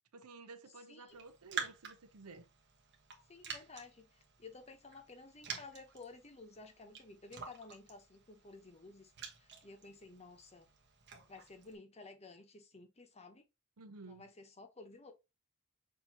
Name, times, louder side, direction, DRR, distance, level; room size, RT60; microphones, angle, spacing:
voice 1, 0.1-2.5 13.8-14.3, right 3 dB, 85° right, 0.7 m, -53 dB
Raindrop, 1.1-11.7, right 6 dB, 50° right, 1.3 m, -49 dB
voice 2, 3.3-9.1 9.4-10.7 11.3-13.4 14.1-15.1, left 3 dB, 30° left, 0.9 m, -54 dB
6.6 x 2.8 x 2.9 m
head